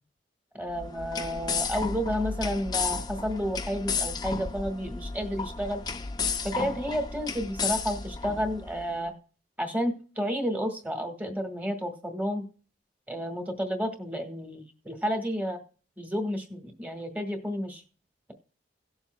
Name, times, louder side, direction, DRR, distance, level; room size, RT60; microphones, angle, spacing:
voice 1, 0.5-5.8 6.4-9.1 9.6-12.5 13.1-15.6 16.0-17.8, equal, 10° right, 4 dB, 1.6 m, -31 dB
sound 1, 0.7-8.8, left 5 dB, 20° left, 0.6 m, -33 dB
18.0 x 7.2 x 2.3 m, 0.39 s
head